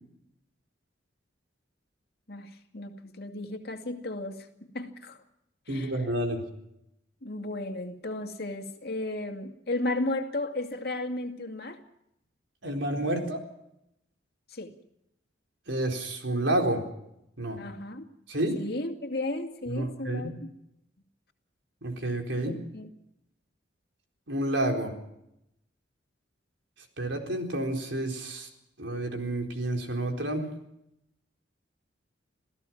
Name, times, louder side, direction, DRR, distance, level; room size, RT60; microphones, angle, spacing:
voice 1, 2.3-4.5 4.7-5.2 5.7-5.9 7.2-11.8 14.5-14.7 17.6-18.1 18.5-20.5 22.5-22.9, left 2 dB, 55° left, 5 dB, 2.4 m, -34 dB
voice 2, 5.7-6.4 12.6-13.4 15.7-16.9 17.4-17.6 18.3-18.6 19.7-20.3 21.8-22.6 24.3-24.9 27.0-28.5 28.8-30.5, right 1 dB, 80° right, 3 dB, 4.2 m, -29 dB
28.0 x 16.5 x 5.9 m, 0.82 s
head